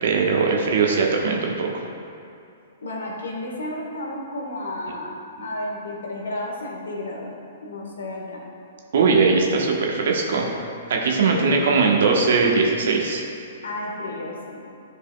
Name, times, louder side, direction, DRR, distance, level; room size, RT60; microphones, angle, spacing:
voice 1, 0.0-1.8 8.9-10.5 10.9-13.2, right 4 dB, 65° right, 0 dB, 1.1 m, -20 dB
voice 2, 2.8-7.3 7.6-8.4 11.3-11.8 13.6-14.7, left 1 dB, 75° left, -2 dB, 1.6 m, -32 dB
12.0 x 4.9 x 2.3 m, 2.6 s
hypercardioid pair, 120°, 0 cm